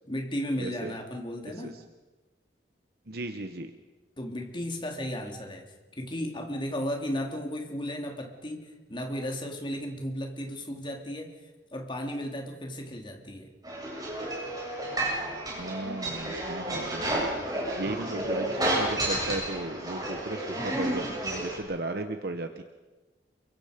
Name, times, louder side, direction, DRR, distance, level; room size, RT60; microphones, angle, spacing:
voice 1, 0.1-1.8 4.2-5.7 6.0-11.4 11.7-13.5, equal, 30° left, 2 dB, 3.2 m, -34 dB
voice 2, 0.6-0.9 1.5-1.8 3.1-3.7 15.6-22.6, right 2 dB, 60° right, 7 dB, 1.2 m, -36 dB
sound 1, 13.6-21.6, right 1 dB, 20° right, 7.5 m, -31 dB
29.0 x 23.5 x 5.3 m, 1.2 s
head